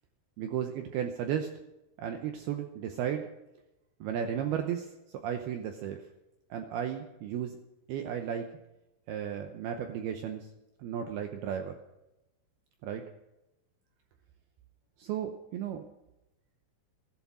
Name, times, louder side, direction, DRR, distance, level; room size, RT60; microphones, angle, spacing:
voice 1, 0.4-1.5 2.0-3.3 4.0-6.0 6.5-7.6 7.9-8.5 9.1-10.5 10.8-11.8 12.8-13.1 15.0-15.8, right 9 dB, 80° right, 5 dB, 2.2 m, -34 dB
16.0 x 11.5 x 6.1 m, 0.95 s
omnidirectional pair, 5.6 m